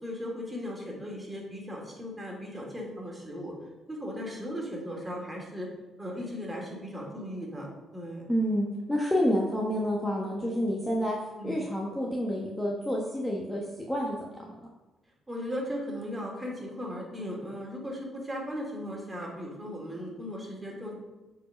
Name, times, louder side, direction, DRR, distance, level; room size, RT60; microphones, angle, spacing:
voice 1, 0.0-3.5 3.9-5.7 6.0-7.7 7.9-8.3 11.4-11.6 15.3-20.9, equal, 15° right, -2 dB, 2.9 m, -37 dB
voice 2, 8.3-14.7, equal, 5° left, -3 dB, 1.3 m, -29 dB
8.4 x 4.9 x 5.2 m, 1.1 s
cardioid pair, 90°, 0 cm